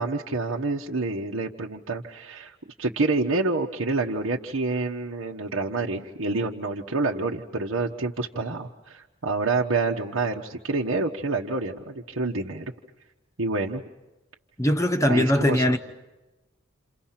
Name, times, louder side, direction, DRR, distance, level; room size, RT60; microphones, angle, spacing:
voice 1, 0.0-12.7 13.4-13.8 15.1-15.8, right 3 dB, 80° right, 1.2 m, -28 dB
voice 2, 14.6-15.8, left 1 dB, 15° left, 0.9 m, -21 dB
29.0 x 28.5 x 5.9 m
head